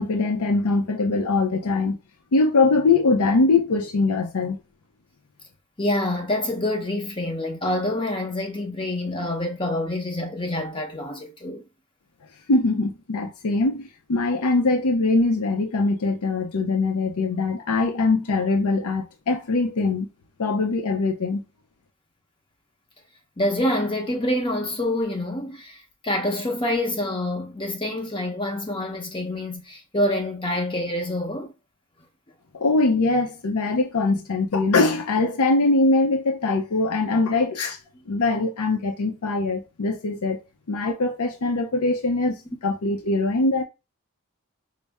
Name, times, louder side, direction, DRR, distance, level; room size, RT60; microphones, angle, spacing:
voice 1, 0.0-2.0 2.3-4.6 12.5-20.1 20.4-21.4 32.5-37.8 38.1-40.4 40.7-43.6, left 3 dB, 85° left, 0.6 m, -22 dB
voice 2, 5.8-11.6 23.4-31.5, left 1 dB, 25° left, 0.8 m, -26 dB
5.3 x 2.0 x 3.4 m
head